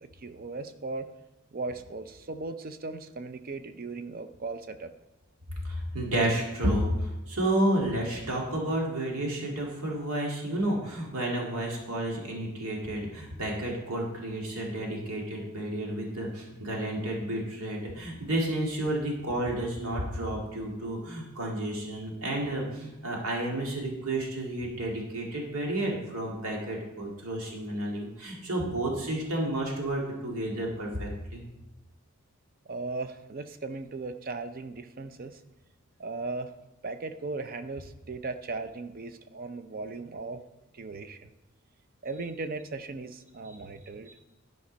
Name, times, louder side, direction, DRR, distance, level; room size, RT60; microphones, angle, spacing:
voice 1, 0.2-1.1 1.5-4.9 32.7-35.4 36.0-36.5 36.8-40.4 40.7-41.3 42.0-44.1, right 3 dB, 40° right, 10 dB, 0.5 m, -37 dB
voice 2, 5.6-31.4, right 1 dB, 85° right, -1 dB, 2.2 m, -31 dB
11.5 x 5.3 x 5.2 m, 1.0 s
head